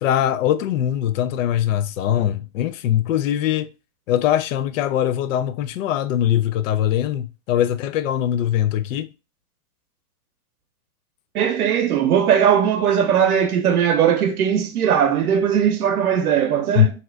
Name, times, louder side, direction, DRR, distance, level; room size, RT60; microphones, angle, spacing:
voice 1, 0.0-3.7 4.1-9.1 16.8-16.9, left 11 dB, 60° left, 0.5 m, -21 dB
voice 2, 11.3-16.9, right 8 dB, 90° right, 0.7 m, -19 dB
2.8 x 2.5 x 3.2 m
hypercardioid pair, 125°, 44 cm